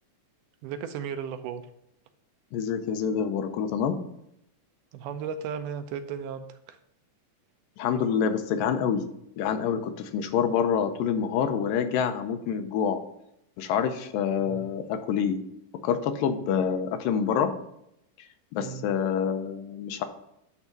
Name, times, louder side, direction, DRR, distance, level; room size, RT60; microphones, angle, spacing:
voice 1, 0.6-1.6 4.9-6.8 14.4-14.7 18.6-18.9, right 7 dB, 80° right, 8 dB, 2.0 m, -35 dB
voice 2, 2.5-4.0 7.8-9.0 9.4-13.0 13.6-15.4 15.8-17.5 18.5-20.0, left 7 dB, 85° left, 8 dB, 2.5 m, -27 dB
9.9 x 3.6 x 6.9 m, 0.78 s
omnidirectional pair, 3.9 m